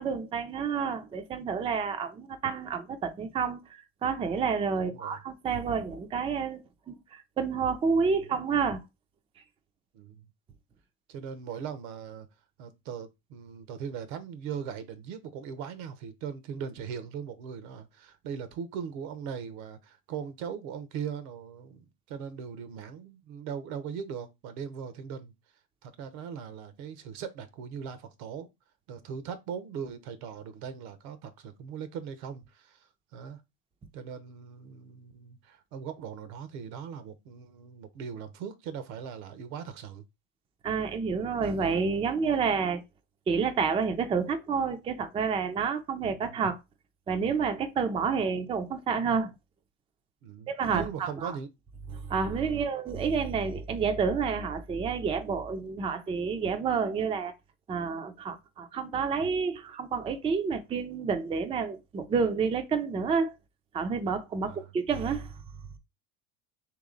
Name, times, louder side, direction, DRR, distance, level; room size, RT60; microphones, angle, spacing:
voice 1, 0.0-8.8 40.6-42.8 43.3-46.6 47.1-49.3 50.5-51.4 51.9-57.3 57.7-63.3 63.7-65.3, right 5 dB, 15° right, 0.3 m, -29 dB
voice 2, 4.7-5.2 9.9-10.3 11.1-12.3 12.6-25.3 25.8-28.5 28.9-33.4 33.9-40.0 46.0-46.1 48.0-48.2 50.2-51.5 52.5-52.7 64.4-64.7, right 7 dB, 75° right, 0.9 m, -39 dB
3.1 x 3.0 x 3.8 m
supercardioid pair, 115°, 43 cm